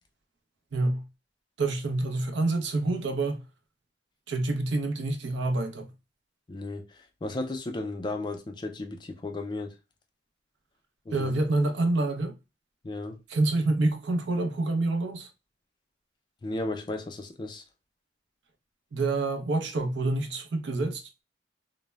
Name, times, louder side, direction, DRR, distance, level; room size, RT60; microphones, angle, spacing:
voice 1, 0.7-1.0 1.6-3.4 4.3-5.9 11.1-12.4 13.3-15.3 18.9-21.0, right 2 dB, 75° right, 0.5 m, -27 dB
voice 2, 6.5-9.7 11.1-11.3 12.8-13.2 16.4-17.6, left 2 dB, 25° left, 0.3 m, -34 dB
2.0 x 2.0 x 3.2 m
head